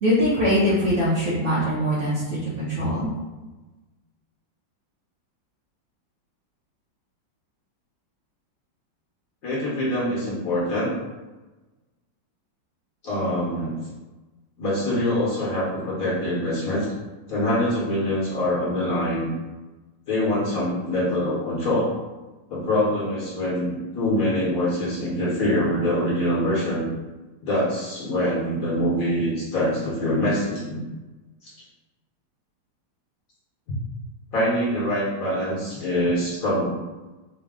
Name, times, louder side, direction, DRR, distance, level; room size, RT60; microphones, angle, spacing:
voice 1, 0.0-3.1, equal, 50° right, -8 dB, 0.9 m, -22 dB
voice 2, 9.4-10.9 13.0-13.8 14.6-16.9 17.3-19.3 20.1-21.9 22.5-26.9 27.4-30.8 31.4-31.5 34.3-36.7, left 1 dB, 55° left, -7 dB, 1.2 m, -24 dB
3.9 x 2.2 x 3.5 m, 1.2 s
omnidirectional pair, 2.0 m